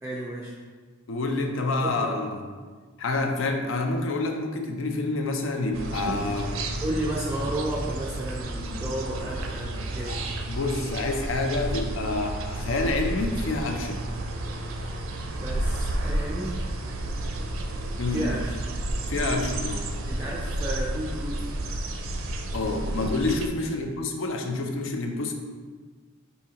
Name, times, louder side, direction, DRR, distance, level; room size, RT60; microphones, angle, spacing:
voice 1, 0.0-0.6 1.8-2.2 6.8-10.3 15.4-16.6 18.1-18.5 20.1-21.6 23.6-23.8, right 1 dB, 10° right, -5 dB, 0.3 m, -33 dB
voice 2, 1.1-2.4 3.0-6.6 10.1-10.2 10.5-14.1 18.0-18.3 19.1-19.9 22.5-25.3, left 2 dB, 70° left, 4 dB, 0.5 m, -28 dB
sound 1, 5.7-23.5, right 1 dB, 80° right, 0.4 m, -31 dB
5.0 x 2.7 x 2.8 m, 1.5 s
head